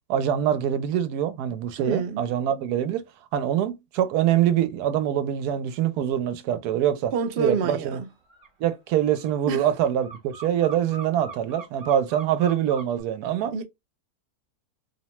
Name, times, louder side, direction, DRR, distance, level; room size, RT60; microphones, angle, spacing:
voice 1, 0.1-3.0 3.3-8.0 8.6-13.5, right 10 dB, 90° right, 1.1 m, -24 dB
voice 2, 1.8-2.2 7.1-8.1 9.5-9.6 13.5-13.6, right 5 dB, 65° right, 0.6 m, -27 dB
sound 1, 7.9-8.0 8.3-13.0, right 4 dB, 45° right, 1.1 m, -42 dB
2.8 x 2.1 x 2.9 m
omnidirectional pair, 1.6 m